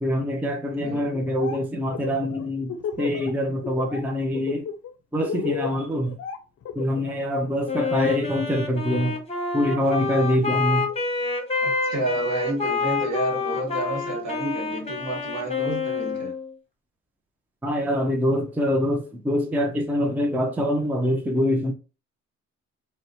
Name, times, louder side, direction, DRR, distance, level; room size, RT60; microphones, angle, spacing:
voice 1, 0.0-4.7 5.1-6.2 6.8-9.2 9.5-10.9 17.6-21.7, equal, 5° right, 0.4 m, -24 dB
voice 2, 0.7-1.2 11.6-16.3, right 2 dB, 60° right, 1.3 m, -30 dB
Laughter, 1.1-1.6 1.9-3.3 3.6-4.0 4.3-7.2, left 7 dB, 55° left, 0.5 m, -32 dB
Wind instrument woodwind instrument, 7.7-16.5, left 4 dB, 20° left, 0.8 m, -28 dB
2.9 x 2.1 x 2.7 m
cardioid pair, 90°, 30 cm